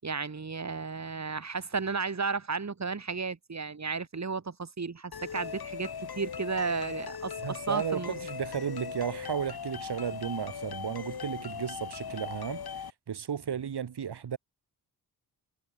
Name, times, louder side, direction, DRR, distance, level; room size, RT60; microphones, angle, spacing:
voice 1, 0.0-8.2, right 4 dB, 45° right, 7.8 m, -33 dB
sound 1, 5.1-12.9, left 7 dB, 70° left, 5.1 m, -39 dB
voice 2, 7.4-14.4, right 8 dB, 85° right, 5.8 m, -34 dB
wide cardioid pair, 110°, 39 cm